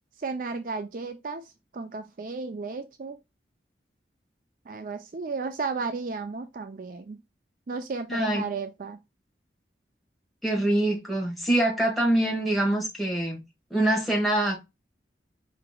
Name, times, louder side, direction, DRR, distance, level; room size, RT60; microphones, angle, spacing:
voice 1, 0.2-3.2 4.7-7.2 7.7-9.0, right 4 dB, 50° right, 0.4 m, -34 dB
voice 2, 8.1-8.4 10.4-13.4 13.7-14.6, right 1 dB, ahead, 1.4 m, -24 dB
4.9 x 3.3 x 2.2 m
head